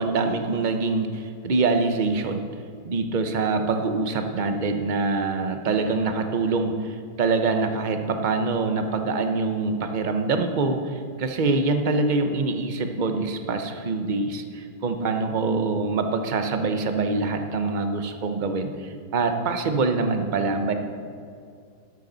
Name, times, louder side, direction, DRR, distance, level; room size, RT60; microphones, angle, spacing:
voice 1, 0.0-2.5 2.8-20.7, right 3 dB, 50° right, 6 dB, 0.5 m, -25 dB
12.5 x 11.5 x 4.0 m, 2.3 s
omnidirectional pair, 1.9 m